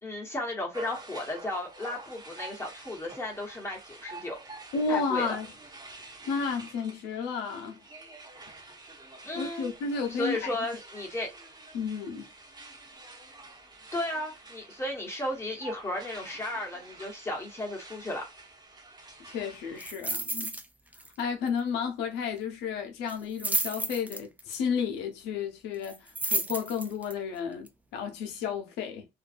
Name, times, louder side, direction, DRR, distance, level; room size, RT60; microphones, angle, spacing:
voice 1, 0.0-4.4 4.9-5.4 9.2-9.7 10.1-11.3 13.9-18.3, left 1 dB, 15° left, 1.2 m, -34 dB
sound 1, 0.7-19.9, right 2 dB, 25° right, 1.1 m, -48 dB
voice 2, 4.7-5.5 6.3-7.8 9.3-10.6 11.7-12.3 19.2-20.6 21.2-29.1, left 5 dB, 90° left, 0.7 m, -32 dB
sound 2, 19.8-20.6 20.9-21.2 21.5-21.6 23.1-24.5 25.8-27.1 27.7-27.8, right 2 dB, 10° right, 0.4 m, -32 dB
2.6 x 2.2 x 2.5 m
cardioid pair, 110°, 17 cm